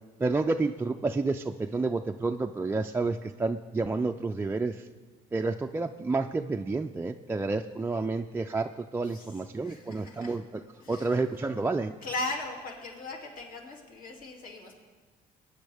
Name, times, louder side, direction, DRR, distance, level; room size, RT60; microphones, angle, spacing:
voice 1, 0.2-4.9 5.3-10.6 10.9-11.9, right 3 dB, 15° right, 4 dB, 0.3 m, -30 dB
voice 2, 9.6-10.4 10.8-11.1 12.0-14.8, left 2 dB, 55° left, -1 dB, 2.6 m, -38 dB
21.0 x 9.8 x 3.5 m, 1.4 s
cardioid pair, 110°, 17 cm